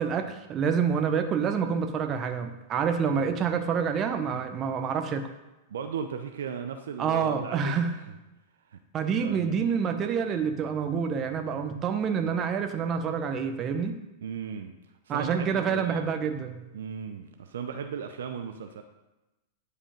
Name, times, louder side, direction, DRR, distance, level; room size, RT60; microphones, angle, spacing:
voice 1, 0.0-5.3 7.0-7.9 8.9-13.9 15.1-16.6, right 6 dB, 30° right, 6 dB, 1.1 m, -27 dB
voice 2, 5.7-8.2 8.7-8.8 9.2-9.4 14.2-14.8 15.1-16.1 16.7-18.8, right 7 dB, 70° right, 6 dB, 0.7 m, -36 dB
10.0 x 5.0 x 5.2 m, 1.0 s
figure-of-eight pair, 95°, 0 cm